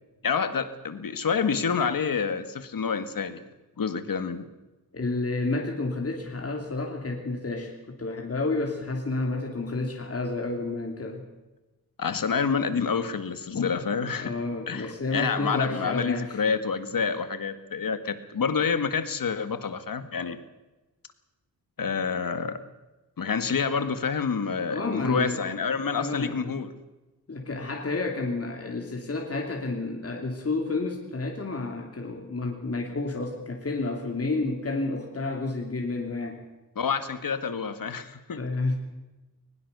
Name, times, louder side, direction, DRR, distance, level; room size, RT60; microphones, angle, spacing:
voice 1, 0.2-3.4 3.8-4.5 12.0-14.3 14.7-20.4 21.8-22.6 23.2-26.7 36.8-38.4, left 6 dB, 65° left, 11 dB, 1.8 m, -28 dB
voice 2, 4.9-11.2 14.2-16.4 24.7-25.5 25.9-26.5 27.3-36.4 38.4-38.8, left 3 dB, 40° left, 1 dB, 3.0 m, -30 dB
22.0 x 20.5 x 6.9 m, 1.1 s
wide cardioid pair, 150°, 37 cm